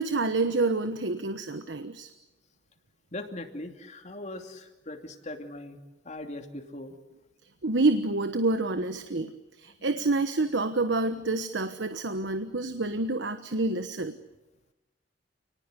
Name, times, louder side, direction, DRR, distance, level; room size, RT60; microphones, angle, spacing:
voice 1, 0.0-2.1 7.6-9.3 9.6-14.1, right 2 dB, 85° right, 10 dB, 1.2 m, -28 dB
voice 2, 3.1-5.8 6.0-6.9, left 1 dB, 40° left, 5 dB, 2.8 m, -40 dB
29.0 x 19.5 x 9.8 m, 1.0 s
head